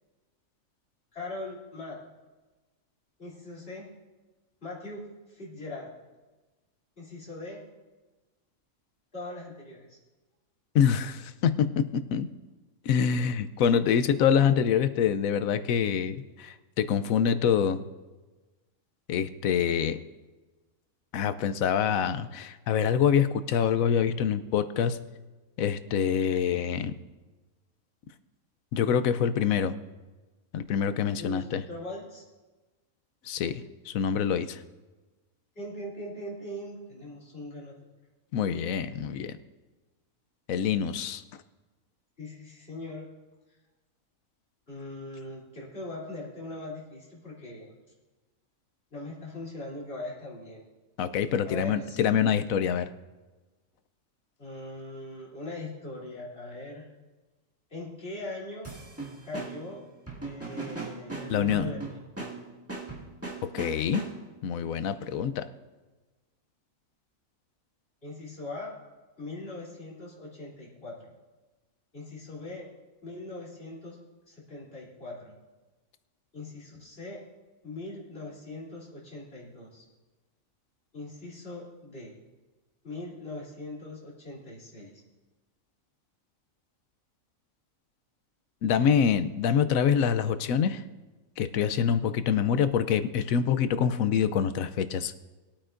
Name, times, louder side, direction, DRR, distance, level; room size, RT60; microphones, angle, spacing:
voice 1, 1.1-2.0 3.2-3.9 4.6-5.9 7.0-7.6 9.1-10.0 31.2-32.2 35.5-37.9 42.2-43.0 44.7-47.8 48.9-50.6 51.4-52.0 54.4-56.8 57.7-58.7 59.2-59.8 60.2-62.0 68.0-68.7 69.2-71.1 71.9-72.7 73.0-74.0 74.3-75.3 76.3-77.2 77.6-79.8 80.9-82.1 82.8-84.9, left 2 dB, 45° left, -6 dB, 3.5 m, -40 dB
voice 2, 10.7-12.3 12.8-17.8 19.1-20.0 21.1-25.0 25.6-26.9 28.7-29.8 30.5-31.6 33.2-34.6 38.3-39.4 40.5-41.2 51.0-52.9 61.3-61.7 63.5-64.0 64.4-65.5 88.6-90.8 91.4-95.1, left 8 dB, 85° left, 12 dB, 1.1 m, -25 dB
sound 1, 58.6-64.4, right 3 dB, 10° right, 1.8 m, -39 dB
21.0 x 8.7 x 2.6 m, 1.2 s
omnidirectional pair, 1.4 m